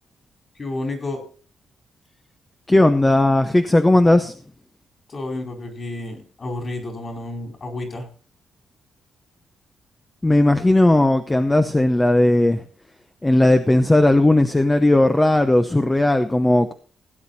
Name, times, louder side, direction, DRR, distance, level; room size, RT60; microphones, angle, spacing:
voice 1, 0.6-1.2 5.1-8.1, left 2 dB, 35° left, 3 dB, 4.6 m, -30 dB
voice 2, 2.7-4.3 10.2-12.6 13.2-16.7, left 1 dB, 10° left, 8 dB, 0.7 m, -16 dB
17.0 x 9.4 x 4.1 m, 0.39 s
cardioid pair, 150°, 0 cm